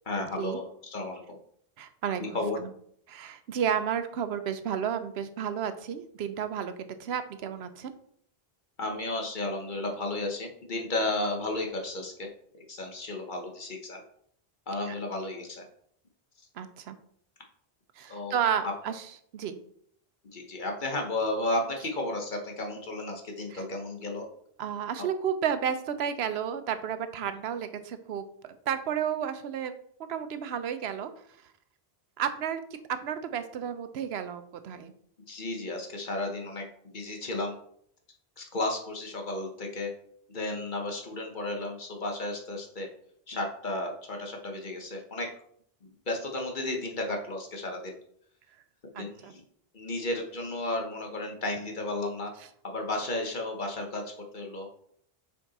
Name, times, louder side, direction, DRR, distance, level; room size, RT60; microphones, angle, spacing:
voice 1, 0.1-1.4 2.3-2.6 8.8-12.3 12.5-14.0 14.7-15.6 18.1-18.3 18.6-18.7 20.3-24.2 35.3-36.7 36.9-37.6 38.4-39.9 40.3-42.9 43.3-45.3 45.8-47.9 48.9-49.4 49.7-52.3 52.6-54.0 54.3-54.7, left 2 dB, 50° left, 2 dB, 1.2 m, -33 dB
voice 2, 1.8-2.7 3.1-6.7 7.0-7.9 14.9-15.0 16.5-17.0 18.0-19.1 19.3-19.6 23.5-23.6 24.6-29.8 30.1-31.1 32.2-32.6 33.0-34.9 48.9-49.3, right 8 dB, 90° right, 10 dB, 0.9 m, -32 dB
5.9 x 4.9 x 4.1 m, 0.66 s
omnidirectional pair, 1.0 m